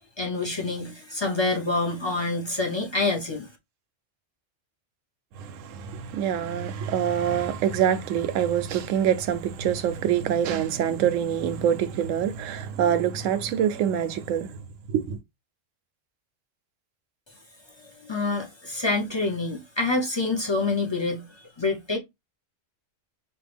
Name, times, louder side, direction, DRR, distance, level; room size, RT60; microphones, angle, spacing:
voice 1, 0.2-3.5 17.8-22.0, left 3 dB, 25° left, 0.7 m, -27 dB
voice 2, 5.4-14.6 14.9-15.2, right 9 dB, 85° right, 1.0 m, -25 dB
4.4 x 2.4 x 3.4 m
omnidirectional pair, 1.3 m